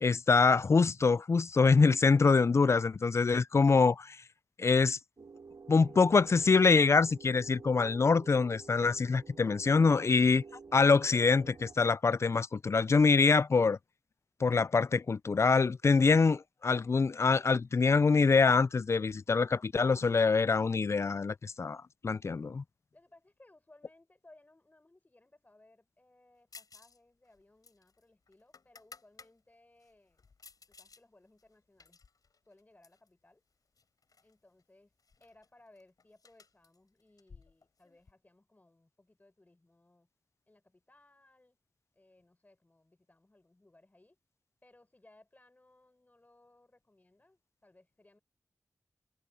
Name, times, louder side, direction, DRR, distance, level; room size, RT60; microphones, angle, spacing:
voice 1, 0.0-4.2 4.6-5.0 5.7-10.4 10.7-13.8 14.4-22.6, left 4 dB, 45° left, 0.3 m, -25 dB
sound 1, 5.2-11.8, right 4 dB, 80° right, 3.3 m, -51 dB
voice 2, 10.1-11.1 22.9-30.3 30.7-32.0 32.4-33.4 34.2-34.9 35.2-40.1 40.5-41.6 41.9-44.2 44.6-48.2, left 2 dB, 25° left, 5.9 m, -63 dB
sound 2, 26.5-27.0 27.3-29.3 29.8-31.0 31.4-33.1 33.8-34.3 34.6-34.7 35.0-38.1, left 4 dB, 75° left, 7.0 m, -57 dB
wide cardioid pair, 100°, 6 cm